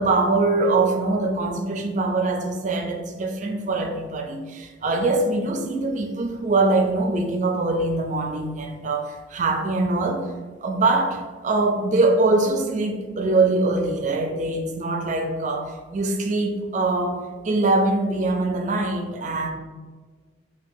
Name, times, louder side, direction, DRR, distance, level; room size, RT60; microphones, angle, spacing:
voice 1, 0.0-10.3 10.6-19.5, right 2 dB, 40° right, 3 dB, 0.4 m, -23 dB
4.6 x 2.3 x 2.6 m, 1.4 s
head